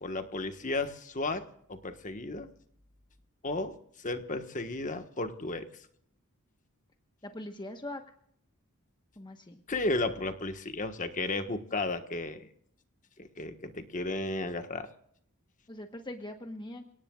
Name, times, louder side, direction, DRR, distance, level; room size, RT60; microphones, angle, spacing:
voice 1, 0.0-1.4 1.7-2.5 3.4-5.7 9.7-12.5 13.2-14.9, left 2 dB, 35° left, 7 dB, 1.4 m, -34 dB
voice 2, 7.2-8.0 9.2-9.6 15.7-16.9, left 1 dB, 20° left, 5 dB, 1.2 m, -41 dB
29.0 x 18.5 x 2.4 m, 0.70 s
head